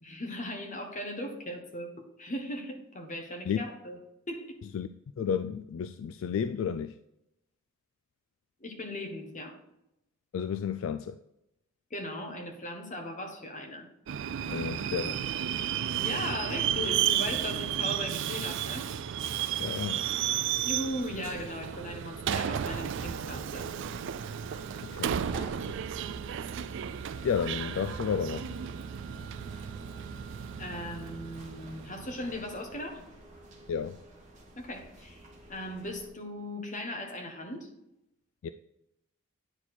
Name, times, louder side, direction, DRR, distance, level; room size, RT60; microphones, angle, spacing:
voice 1, 0.0-1.9 2.2-4.0 4.3-4.6 8.6-9.6 11.9-13.9 15.9-18.9 20.6-23.7 30.6-33.0 34.6-35.2 35.5-37.7, left 1 dB, 40° left, 1.3 m, -38 dB
voice 2, 5.2-6.9 10.3-11.2 14.5-15.2 19.6-20.1 24.9-25.2 27.2-28.6 33.7-34.0 38.4-38.5, left 7 dB, 70° left, 0.3 m, -32 dB
Subway metro underground, 14.1-32.5, right 9 dB, 65° right, 0.4 m, -33 dB
sound 1, 20.6-36.1, right 1 dB, 35° right, 1.6 m, -51 dB
9.7 x 4.3 x 4.3 m
head